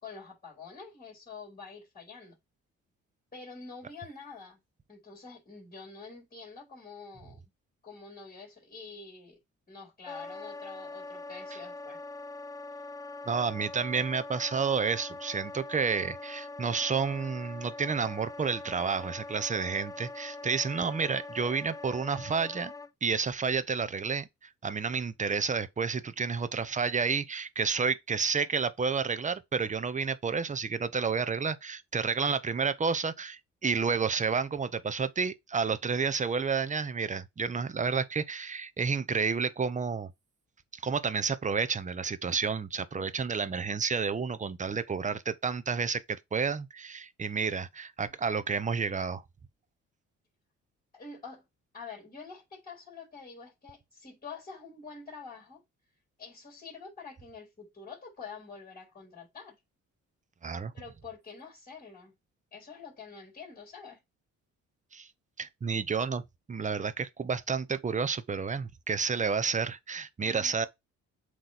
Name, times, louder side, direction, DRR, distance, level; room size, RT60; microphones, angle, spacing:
voice 1, 0.0-2.4 3.3-4.6 4.9-7.4 7.8-9.4 9.7-12.0 50.9-51.5 51.7-55.6 56.2-59.5 60.7-62.1 62.5-64.0 70.2-70.7, left 5 dB, 30° left, 4.1 m, -47 dB
Wind instrument woodwind instrument, 10.1-22.9, left 2 dB, 10° left, 0.4 m, -43 dB
voice 2, 13.3-22.7 23.0-24.3 24.6-40.1 40.7-49.2 60.4-60.7 64.9-65.1 65.4-66.2 66.5-70.7, right 5 dB, 25° right, 0.8 m, -30 dB
7.7 x 3.2 x 4.1 m
cardioid pair, 90°, 30 cm